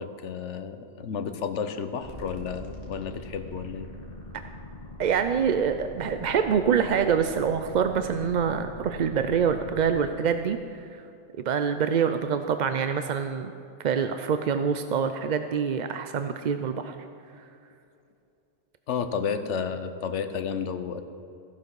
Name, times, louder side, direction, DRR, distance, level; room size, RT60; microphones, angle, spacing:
voice 1, 0.0-3.9 18.9-21.1, left 6 dB, 80° left, 10 dB, 1.1 m, -32 dB
sound 1, 2.0-10.0, left 2 dB, 35° left, 2.3 m, -42 dB
voice 2, 5.0-11.0 11.4-13.5 13.8-17.0, right 7 dB, 55° right, 8 dB, 0.5 m, -25 dB
15.5 x 11.5 x 4.7 m, 2.7 s
omnidirectional pair, 1.2 m